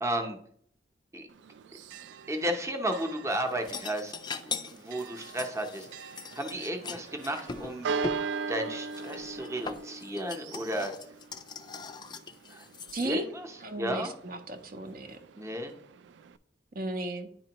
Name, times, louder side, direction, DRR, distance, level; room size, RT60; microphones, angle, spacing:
voice 1, 0.0-0.4 1.1-1.3 2.3-4.1 4.5-7.9 8.5-10.9 12.5-12.7 13.0-14.1 15.3-15.7, right 1 dB, 15° right, 4 dB, 0.7 m, -33 dB
Church bell, 1.3-16.4, right 4 dB, 85° right, 0.3 m, -41 dB
sound 1, 3.3-8.2 8.9-13.1, left 4 dB, 25° left, 0.4 m, -41 dB
voice 2, 12.9-13.3 13.6-15.2 16.7-17.3, right 2 dB, 55° right, 5 dB, 0.6 m, -35 dB
9.8 x 4.1 x 2.9 m, 0.64 s
head